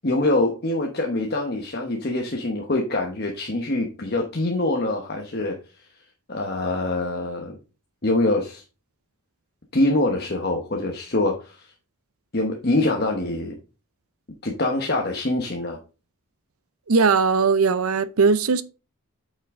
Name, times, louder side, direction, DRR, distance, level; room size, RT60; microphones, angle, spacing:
voice 1, 0.0-5.6 6.3-7.6 8.0-8.6 9.7-11.7 12.3-13.6 14.4-15.8, left 2 dB, 45° left, 1.1 m, -24 dB
voice 2, 16.9-18.6, right 4 dB, 75° right, 0.6 m, -19 dB
8.4 x 5.6 x 3.7 m
head